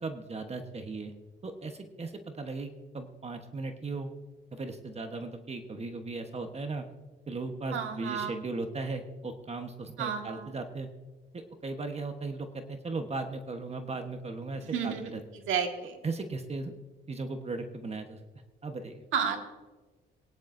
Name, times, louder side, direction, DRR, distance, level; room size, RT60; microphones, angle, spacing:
voice 1, 0.0-1.1 1.4-4.1 4.5-6.9 7.3-10.9 11.3-15.2 16.0-16.7 17.1-18.2 18.6-19.0, right 3 dB, 30° right, 6 dB, 1.2 m, -37 dB
voice 2, 7.7-8.3 10.0-10.5 14.6-15.1 15.5-16.0 19.1-19.4, right 7 dB, 85° right, 4 dB, 1.9 m, -31 dB
21.5 x 10.5 x 2.7 m, 1.3 s
cardioid pair, 90°, 20 cm